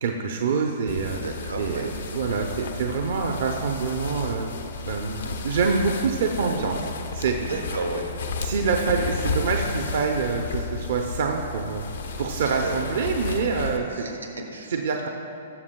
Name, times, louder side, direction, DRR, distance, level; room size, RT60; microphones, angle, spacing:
voice 1, 0.0-1.2 1.6-4.5 4.9-7.4 8.4-11.8 12.2-14.1 14.7-15.1, right 5 dB, 60° right, 2 dB, 0.6 m, -26 dB
sound 1, 0.9-13.8, left 4 dB, 65° left, 0.7 m, -33 dB
voice 2, 1.1-1.9 7.4-8.4 12.4-12.8 13.9-14.7, right 2 dB, 85° right, 2 dB, 1.3 m, -33 dB
18.5 x 7.3 x 2.2 m, 2.8 s
figure-of-eight pair, 115°, 0 cm